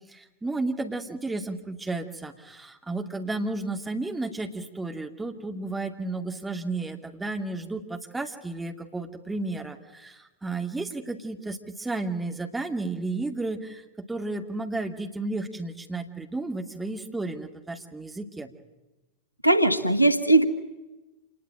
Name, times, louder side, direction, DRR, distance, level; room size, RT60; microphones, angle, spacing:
voice 1, 0.1-18.5, right 2 dB, 10° right, 4 dB, 2.5 m, -33 dB
voice 2, 19.4-20.4, right 2 dB, 85° left, 12 dB, 1.5 m, -19 dB
27.5 x 20.0 x 9.0 m, 1.1 s
figure-of-eight pair, 90°, 0 cm